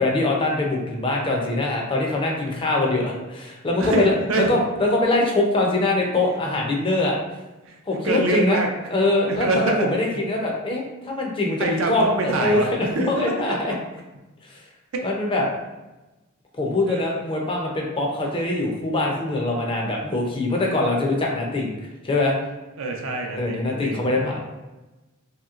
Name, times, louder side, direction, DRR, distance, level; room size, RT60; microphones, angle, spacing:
voice 1, 0.0-4.1 4.5-7.2 7.9-8.6 8.9-12.7 13.1-13.7 14.5-14.6 15.0-15.4 16.6-21.8 22.0-22.3 23.4-24.4, left 2 dB, 25° left, -1 dB, 0.4 m, -23 dB
voice 2, 3.8-4.5 7.6-7.8 8.0-8.7 9.3-9.9 11.6-13.5 14.9-15.1 16.9-17.2 22.8-24.1, right 2 dB, 70° right, 2 dB, 0.5 m, -25 dB
3.0 x 2.8 x 2.4 m, 1.1 s
head